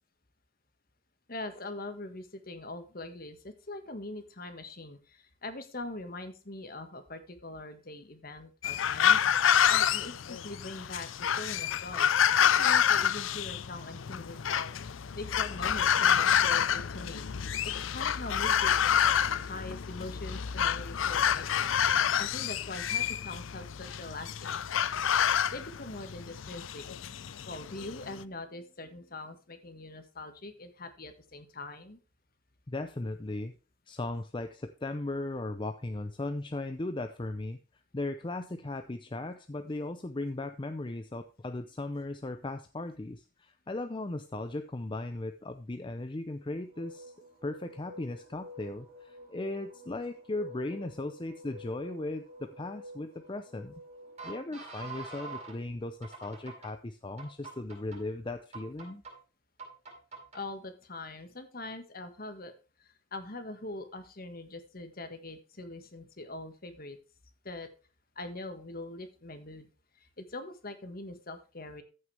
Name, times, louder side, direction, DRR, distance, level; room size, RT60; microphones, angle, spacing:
voice 1, 1.3-11.1 11.4-17.3 17.6-18.7 19.4-24.8 25.5-32.0 60.3-62.5 62.8-67.0 67.4-67.7 68.1-69.7 70.0-71.8, left 2 dB, 50° left, 8 dB, 1.6 m, -43 dB
sound 1, 8.6-28.2, left 9 dB, 85° left, 0.5 m, -28 dB
voice 2, 32.7-33.6 33.9-37.6 37.9-47.1 47.4-53.7 54.2-59.0, left 2 dB, 25° left, 8 dB, 0.6 m, -37 dB
sound 2, 46.5-55.6 56.0-56.7 57.2-58.0 58.5-59.1 59.6-60.4, right 2 dB, 35° right, 5.1 m, -47 dB
14.5 x 6.5 x 3.4 m, 0.34 s
head